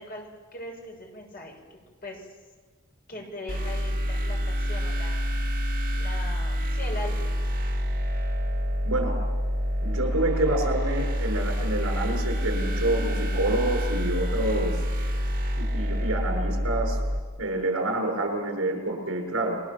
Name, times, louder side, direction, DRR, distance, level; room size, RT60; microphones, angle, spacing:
voice 1, 0.0-2.3 3.1-5.3 6.0-7.4, left 1 dB, 45° left, 1 dB, 6.5 m, -40 dB
sound 1, 3.5-17.2, equal, 40° right, 2.8 m, -27 dB
voice 2, 8.9-9.2 9.8-15.2 15.6-17.0 17.4-19.6, right 2 dB, 75° right, 2 dB, 6.9 m, -28 dB
29.0 x 23.0 x 7.5 m, 1.4 s
head